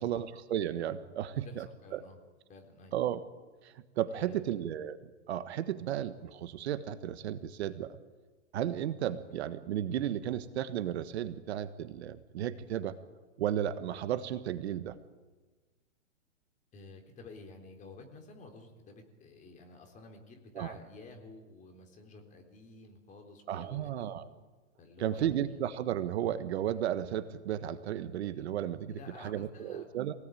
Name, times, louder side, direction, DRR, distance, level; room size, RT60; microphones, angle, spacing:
voice 1, 0.0-1.6 1.9-2.0 2.9-3.2 3.6-5.0 5.3-8.0 8.5-13.0 13.4-15.0 20.5-20.8 23.5-24.3 25.0-30.1, right 11 dB, 55° right, 12 dB, 1.4 m, -34 dB
voice 2, 1.8-2.2 2.5-3.0 4.1-4.6 16.7-24.2 24.8-25.6 28.3-28.5 28.9-29.9, left 3 dB, 20° left, 3 dB, 3.8 m, -52 dB
26.5 x 18.0 x 9.2 m, 1.3 s
hypercardioid pair, 145°, 39 cm